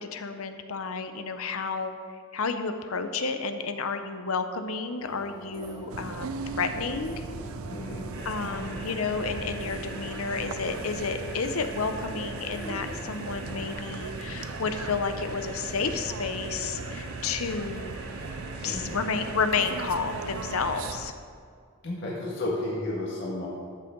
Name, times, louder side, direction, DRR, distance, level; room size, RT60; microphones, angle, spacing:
voice 1, 0.0-1.9 2.3-7.2 8.2-17.9 18.6-21.1, left 5 dB, 85° left, 8 dB, 0.7 m, -31 dB
sound 1, 5.0-13.7, right 3 dB, 20° right, 2.3 m, -44 dB
sound 2, 5.9-21.1, right 4 dB, 80° right, 0.6 m, -38 dB
voice 2, 7.7-8.7 18.6-19.0 21.8-23.5, left 1 dB, 55° left, -5 dB, 1.8 m, -33 dB
sound 3, 8.1-20.9, right 1 dB, 55° right, 2.2 m, -43 dB
13.5 x 8.7 x 3.8 m, 2.2 s
head